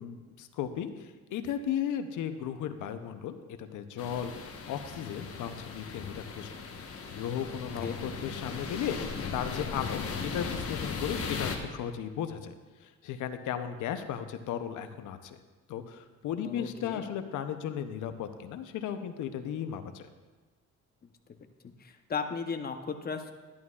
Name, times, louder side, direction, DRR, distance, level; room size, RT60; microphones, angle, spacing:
voice 1, 0.0-4.3 4.7-6.5 7.1-9.0 9.3-12.5 12.8-15.4 15.7-20.1, left 9 dB, 80° left, 9 dB, 0.7 m, -35 dB
sound 1, 4.0-11.6, left 5 dB, 50° left, 1.1 m, -37 dB
voice 2, 16.4-17.1 21.8-23.3, left 5 dB, 30° left, 6 dB, 0.8 m, -35 dB
11.0 x 10.5 x 2.4 m, 1.3 s
cardioid pair, 90°, 30 cm